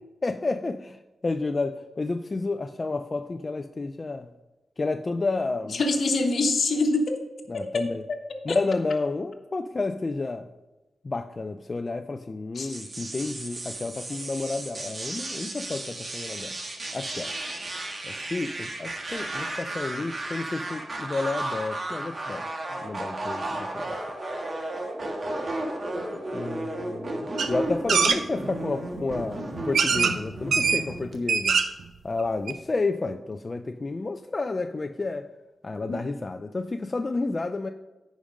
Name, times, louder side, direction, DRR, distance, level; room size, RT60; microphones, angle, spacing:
voice 1, 0.2-1.0 1.2-4.3 4.8-5.8 7.5-8.0 8.5-10.5 11.0-16.6 16.9-17.3 18.0-22.4 22.8-23.5 23.7-23.9 26.3-31.6 32.0-35.3 35.6-37.7, left 3 dB, 40° left, 8 dB, 0.4 m, -30 dB
voice 2, 5.7-7.2 7.5-8.2 8.5-8.6 12.5-12.7 35.9-36.0, left 2 dB, 70° left, 5 dB, 1.2 m, -25 dB
sound 1, 12.7-31.1, right 1 dB, 45° right, 1.8 m, -34 dB
sound 2, 27.4-27.5 27.9-28.2 29.1-29.2 29.7-30.2 30.5-30.8 31.2-31.8 32.2-32.3 32.5-32.6, right 5 dB, 85° right, 0.7 m, -22 dB
10.0 x 5.2 x 5.2 m, 1.1 s
cardioid pair, 75°, 0 cm